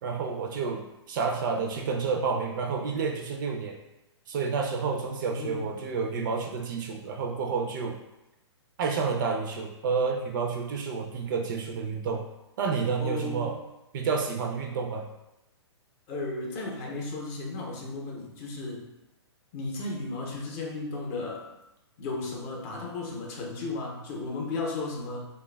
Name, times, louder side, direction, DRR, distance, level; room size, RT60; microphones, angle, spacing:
voice 1, 0.0-3.8 4.3-8.0 8.8-12.2 12.6-13.5 13.9-15.1, right 5 dB, 45° right, 2 dB, 0.4 m, -30 dB
voice 2, 5.3-5.7 13.0-13.5 16.1-18.9 19.5-21.5 22.0-25.2, left 3 dB, 35° left, -1 dB, 0.6 m, -34 dB
3.0 x 2.2 x 2.2 m, 0.94 s
hypercardioid pair, 120°, 15 cm